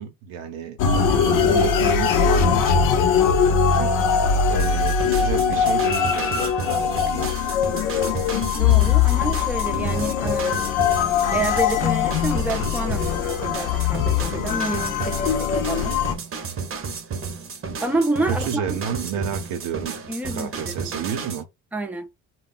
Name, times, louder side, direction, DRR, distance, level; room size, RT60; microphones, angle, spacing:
voice 1, 0.0-2.9 3.7-7.3 15.9-16.2 18.3-19.9 20.3-21.5, right 7 dB, 80° right, 0.7 m, -31 dB
sound 1, 0.8-16.2, left 7 dB, 70° left, 0.6 m, -21 dB
sound 2, 4.6-21.4, right 5 dB, 40° right, 0.8 m, -32 dB
voice 2, 8.5-10.6 10.9-16.0 17.8-18.6 20.1-20.9 21.7-22.1, right 2 dB, 5° right, 0.6 m, -29 dB
2.2 x 2.1 x 3.8 m
supercardioid pair, 70°, 33 cm